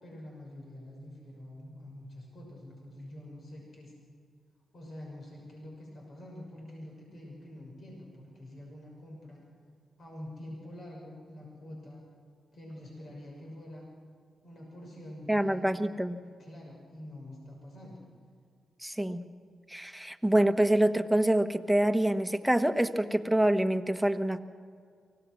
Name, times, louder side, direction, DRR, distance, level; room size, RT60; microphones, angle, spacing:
voice 1, 0.0-3.9 4.7-9.5 10.0-12.1 12.5-13.9 14.4-15.7 16.2-18.1, left 1 dB, 60° left, -2 dB, 6.1 m, -46 dB
voice 2, 15.3-16.2 18.8-19.2 19.7-24.4, right 1 dB, 5° right, 8 dB, 1.3 m, -26 dB
24.5 x 17.5 x 6.2 m, 2.2 s
supercardioid pair, 45°, 0 cm